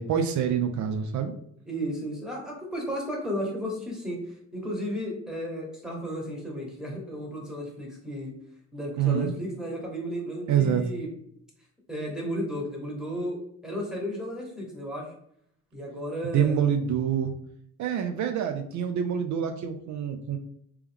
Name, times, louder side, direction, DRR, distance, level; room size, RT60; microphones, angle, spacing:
voice 1, 0.0-1.3 9.0-9.3 10.5-10.8 16.3-17.3 17.8-20.4, right 8 dB, 70° right, 6 dB, 0.5 m, -26 dB
voice 2, 1.7-8.3 8.7-11.1 11.9-15.1 15.7-16.6, equal, ahead, -2 dB, 1.6 m, -34 dB
3.4 x 3.0 x 3.5 m, 0.69 s
cardioid pair, 90°, 30 cm